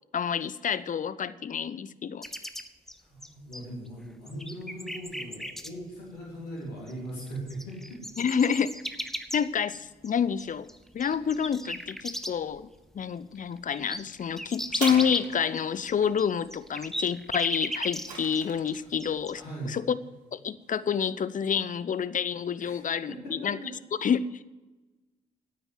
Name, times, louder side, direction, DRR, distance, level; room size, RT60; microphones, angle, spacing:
voice 1, 0.1-2.3 8.2-8.7 9.3-10.7 10.9-12.7 12.9-20.0 20.3-23.6 24.0-24.4, left 7 dB, 40° left, 17 dB, 0.7 m, -28 dB
sound 1, 2.2-3.9 4.3-5.7 6.9-7.0 7.2-12.6 13.0-13.1 13.4-18.4 18.7-19.3, equal, ahead, 1.2 m, -36 dB
voice 2, 3.1-8.3 18.8-18.9 19.3-19.8 22.6-22.8 23.1-23.7, right 1 dB, 90° left, -3 dB, 3.2 m, -40 dB
sound 2, 14.7-15.8 17.5-18.8 19.6-19.7, right 5 dB, 90° right, 1.3 m, -39 dB
9.4 x 8.9 x 9.5 m, 1.2 s
hypercardioid pair, 40°, 20 cm